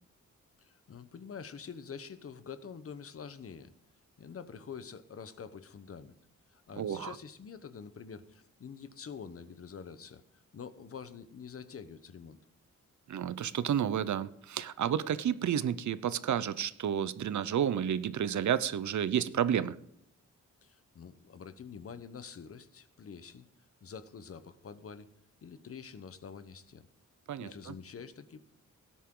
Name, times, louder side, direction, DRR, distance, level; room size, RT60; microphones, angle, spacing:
voice 1, 0.6-3.7 4.2-6.1 6.5-12.4 20.6-23.5 23.8-25.1 25.4-26.9 27.4-28.4, left 6 dB, 50° left, 12 dB, 0.9 m, -46 dB
voice 2, 6.8-7.1 13.1-19.8 27.3-27.7, right 9 dB, 70° right, 16 dB, 0.7 m, -31 dB
17.5 x 10.0 x 3.8 m, 0.77 s
wide cardioid pair, 165°, 31 cm